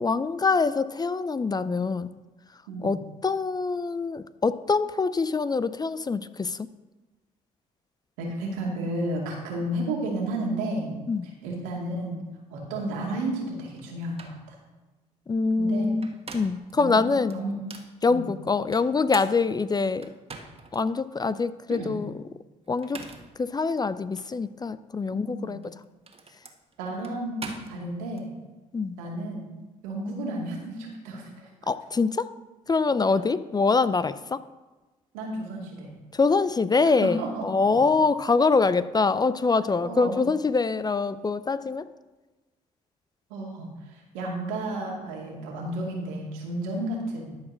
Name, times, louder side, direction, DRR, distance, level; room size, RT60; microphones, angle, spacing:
voice 1, 0.0-2.1 2.8-6.7 11.1-11.3 15.3-17.4 18.0-20.1 20.7-22.1 22.7-23.0 23.4-25.6 28.7-29.0 31.7-32.3 32.7-34.4 36.1-41.9, left 4 dB, 25° left, 15 dB, 0.5 m, -24 dB
voice 2, 2.7-3.0 8.2-12.2 12.5-14.6 15.6-15.9 16.8-17.0 17.3-17.6 18.1-18.3 21.7-22.0 25.1-25.6 26.8-28.3 29.0-29.5 29.8-31.5 35.1-35.9 36.8-37.9 39.8-40.2 43.3-47.3, right 1 dB, 85° right, -2 dB, 2.5 m, -32 dB
sound 1, 13.8-13.9 14.2-14.4 15.8-16.7 17.3-17.9 18.7-20.8 21.3-21.4 22.7-23.4 24.1-24.3 25.5-28.2, right 4 dB, 35° right, 1.6 m, -43 dB
12.5 x 4.9 x 6.2 m, 1.2 s
hypercardioid pair, 55°, 16 cm